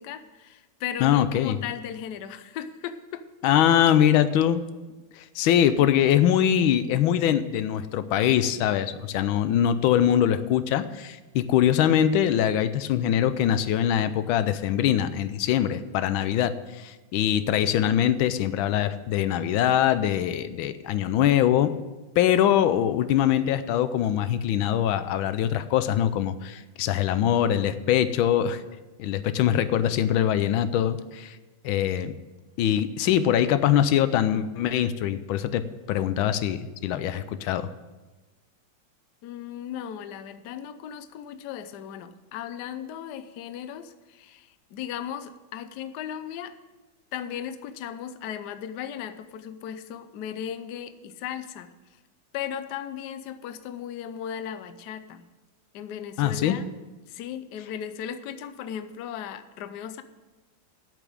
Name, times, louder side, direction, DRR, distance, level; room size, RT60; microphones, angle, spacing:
voice 1, 0.0-3.3 39.2-46.5 47.1-52.0 52.3-55.3 55.7-56.6 57.1-60.0, left 9 dB, 70° left, 12 dB, 1.1 m, -36 dB
voice 2, 1.0-1.6 3.4-4.6 5.1-21.7 22.2-28.6 29.0-31.4 31.6-32.1 32.6-35.6 35.9-37.7 56.2-56.6, left 10 dB, 90° left, 13 dB, 1.4 m, -23 dB
8.3 x 7.3 x 8.6 m, 1.2 s
omnidirectional pair, 2.1 m